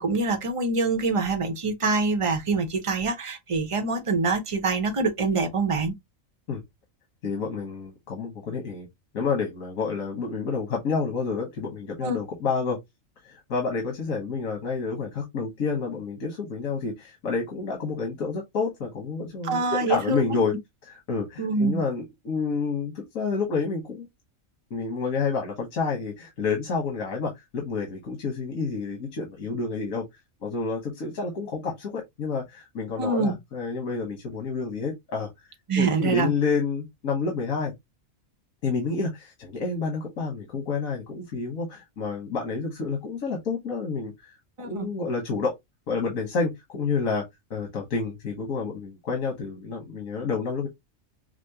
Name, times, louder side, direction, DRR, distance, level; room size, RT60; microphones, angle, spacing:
voice 1, 0.0-5.9 12.0-12.2 19.4-20.4 21.4-21.8 33.0-33.3 35.7-36.3 44.6-44.9, right 3 dB, 30° right, 0.7 m, -25 dB
voice 2, 7.2-8.9 9.1-12.8 13.2-20.5 20.9-24.1 24.7-30.1 30.4-35.3 35.8-37.7 38.6-44.3 44.6-45.5 45.9-47.2 47.5-50.7, left 4 dB, 90° left, 1.6 m, -29 dB
5.8 x 2.1 x 2.8 m
omnidirectional pair, 1.4 m